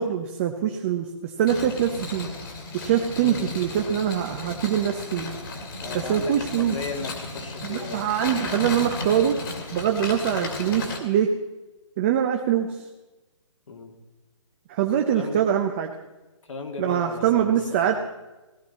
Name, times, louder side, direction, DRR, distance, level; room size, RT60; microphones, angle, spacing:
voice 1, 0.0-2.3 2.7-5.3 5.9-6.8 7.6-9.4 9.7-11.3 12.0-12.8 14.7-15.9 16.8-17.9, right 9 dB, 25° right, 4 dB, 0.7 m, -24 dB
sound 1, 1.5-11.0, left 3 dB, 45° left, 2.3 m, -34 dB
voice 2, 5.8-8.0 13.7-13.9 15.1-15.5 16.4-17.9, left 4 dB, 75° left, 3 dB, 2.5 m, -36 dB
16.5 x 13.0 x 4.2 m, 1.1 s
hypercardioid pair, 160°, 16 cm